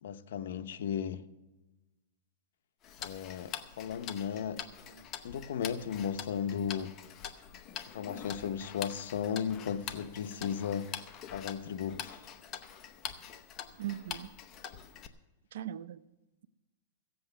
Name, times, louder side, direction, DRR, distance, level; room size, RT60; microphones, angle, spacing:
voice 1, 0.0-1.2 3.0-4.6 5.2-6.9 7.9-10.9 11.3-12.2, left 8 dB, 75° left, 0.8 m, -35 dB
Tick-tock, 2.8-15.1, left 9 dB, 30° left, 0.8 m, -45 dB
voice 2, 4.4-5.0 13.8-14.3 15.5-16.0, right 12 dB, 70° right, 0.5 m, -41 dB
16.0 x 7.9 x 6.7 m
supercardioid pair, 150°, 0 cm